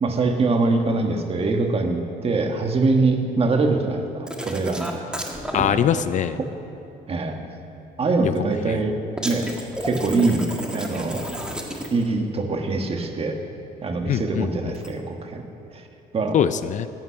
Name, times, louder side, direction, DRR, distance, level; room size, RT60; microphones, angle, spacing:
voice 1, 0.0-5.0 5.7-5.9 6.4-6.5 7.1-7.4 8.0-8.9 9.2-9.5 9.8-10.5 10.7-11.2 11.9-13.4 13.8-15.4 15.7-15.8 16.1-16.3, right 3 dB, 35° right, 4 dB, 1.4 m, -23 dB
sound 1, 4.3-5.7 9.2-12.1 14.7-14.9, right 1 dB, 5° right, 1.4 m, -31 dB
voice 2, 5.5-6.4 8.2-8.3 8.7-8.8 14.1-14.7 16.3-16.9, left 9 dB, 50° left, 13 dB, 0.4 m, -23 dB
14.0 x 9.2 x 5.8 m, 2.8 s
cardioid pair, 110°, 17 cm